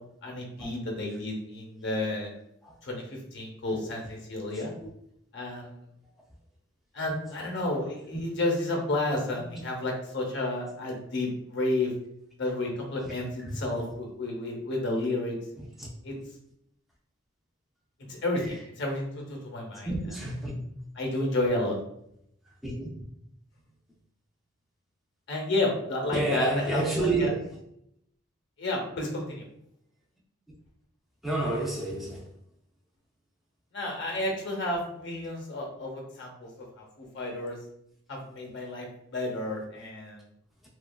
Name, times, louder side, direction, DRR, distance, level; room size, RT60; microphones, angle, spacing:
voice 1, 0.2-2.3 2.8-3.0 3.3-4.7 5.3-5.8 6.9-11.9 12.4-15.4 16.0-16.1 18.2-19.9 21.0-21.7 25.3-27.3 28.6-29.4 33.7-37.6 38.1-38.9 39.1-40.2, left 2 dB, 60° left, 0.7 m, -31 dB
voice 2, 4.5-4.9 8.1-8.3 9.5-9.6 13.0-13.1 13.4-13.9 15.6-15.9 18.4-18.6 19.8-20.6 22.4-22.9 26.1-27.6 31.2-32.3, right 2 dB, ahead, 0.4 m, -31 dB
2.9 x 2.3 x 2.2 m
head